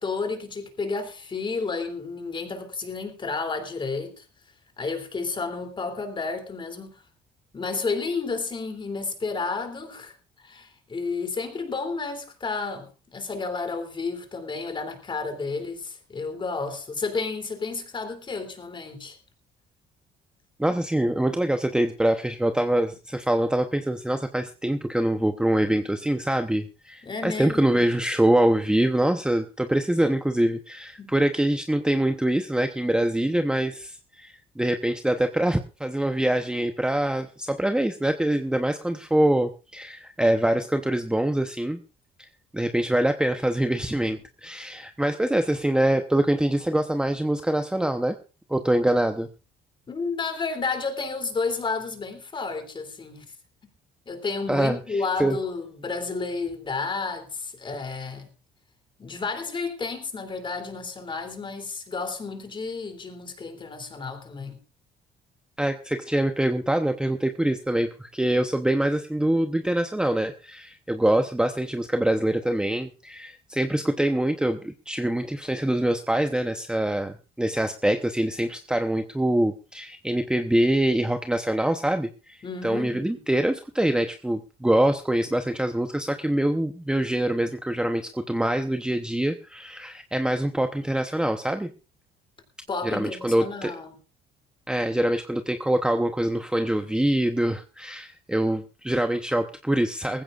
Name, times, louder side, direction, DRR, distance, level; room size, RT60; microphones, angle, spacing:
voice 1, 0.0-4.2 4.8-7.0 7.5-10.1 10.4-19.2 27.0-27.9 31.0-31.1 49.9-53.3 54.1-58.3 59.0-64.6 82.4-83.2 92.7-94.0, left 4 dB, 30° left, 3.1 m, -31 dB
voice 2, 20.6-41.8 42.5-48.2 48.5-49.3 54.5-55.4 65.6-91.7 92.8-93.7 94.7-100.2, right 1 dB, 5° right, 0.9 m, -24 dB
19.5 x 15.5 x 2.5 m
cardioid pair, 110°, 17 cm